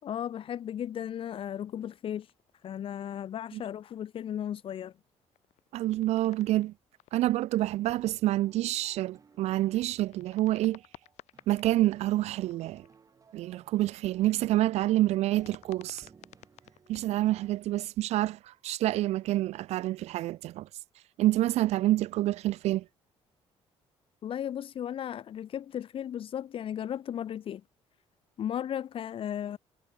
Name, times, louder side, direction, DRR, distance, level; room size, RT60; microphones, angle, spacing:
voice 1, 0.0-2.3 2.6-4.9 24.2-27.6 28.4-29.6, left 10 dB, 50° left, 3.4 m, -35 dB
sound 1, 2.2-2.7 3.1-3.9 4.9-7.7 8.4-11.7 12.0-13.1 13.9-14.3 14.9-17.0, left 15 dB, 85° left, 6.8 m, -56 dB
voice 2, 5.7-6.7 7.1-10.8 11.5-12.9 13.3-16.1 16.9-20.7 21.2-22.9, right 15 dB, 70° right, 0.5 m, -27 dB
sound 2, 7.4-17.6, right 5 dB, 30° right, 7.6 m, -59 dB
cardioid pair, 140°, 11 cm